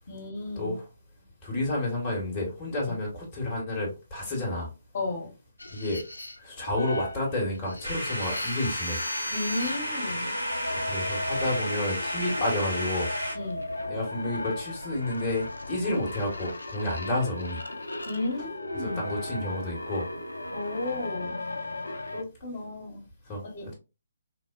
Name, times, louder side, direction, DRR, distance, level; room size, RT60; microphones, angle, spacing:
voice 1, 0.1-0.8 4.9-5.3 9.3-10.4 13.3-13.7 15.8-15.9 18.1-19.0 20.5-21.4 22.1-23.1 23.4-23.7, left 2 dB, 40° left, 0.9 m, -34 dB
voice 2, 1.4-4.7 5.7-6.0 6.4-9.0 10.8-13.1 13.9-17.6 18.8-20.1 23.3-23.7, left 1 dB, 20° left, 0.9 m, -30 dB
sound 1, 5.6-22.2, left 1 dB, 70° left, 0.4 m, -36 dB
sound 2, 7.8-13.3, equal, 70° right, 1.6 m, -33 dB
3.3 x 2.0 x 2.3 m
figure-of-eight pair, 140°, 0 cm